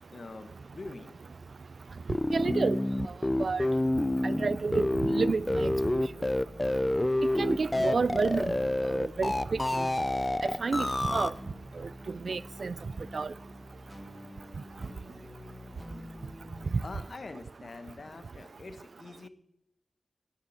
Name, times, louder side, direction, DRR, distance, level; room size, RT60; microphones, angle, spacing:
voice 1, 0.1-1.2 16.8-19.3, left 3 dB, 60° left, 1.1 m, -44 dB
sound 1, 2.1-11.3, left 1 dB, 20° left, 0.4 m, -28 dB
voice 2, 2.3-2.8 3.4-3.6 4.2-6.0 7.4-8.6 8.9-9.9 10.4-11.3 12.2-12.8 13.1-13.3, right 4 dB, 65° right, 0.3 m, -30 dB
sound 2, 4.7-16.8, equal, ahead, 1.8 m, -48 dB
10.0 x 8.0 x 8.6 m
wide cardioid pair, 115°, 0 cm